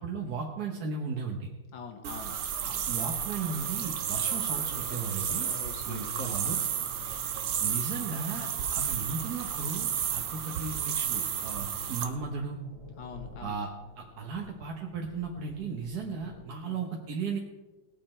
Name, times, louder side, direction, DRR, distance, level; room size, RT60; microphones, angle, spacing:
voice 1, 0.0-1.4 2.6-5.5 5.9-6.6 7.6-12.6 13.4-13.7 14.0-17.4, right 5 dB, 55° right, 0 dB, 1.4 m, -36 dB
voice 2, 1.7-2.3 5.4-6.7 8.3-9.0 13.0-13.6 16.6-16.9, left 5 dB, 65° left, 4 dB, 2.1 m, -45 dB
sound 1, 2.0-12.1, right 8 dB, 85° right, 1.8 m, -32 dB
sound 2, 3.5-16.5, left 3 dB, 80° left, 3.9 m, -50 dB
19.0 x 7.6 x 4.4 m, 1.2 s
omnidirectional pair, 2.3 m